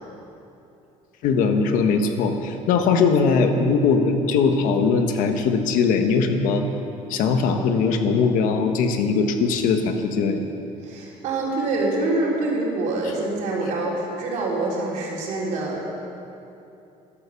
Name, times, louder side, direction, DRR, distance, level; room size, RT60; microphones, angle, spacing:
voice 1, 1.2-6.6 7.1-10.4, left 5 dB, 75° left, 6 dB, 1.3 m, -20 dB
voice 2, 10.8-15.9, right 2 dB, 65° right, -4 dB, 3.8 m, -25 dB
13.5 x 12.0 x 7.0 m, 2.8 s
cardioid pair, 175°, 14 cm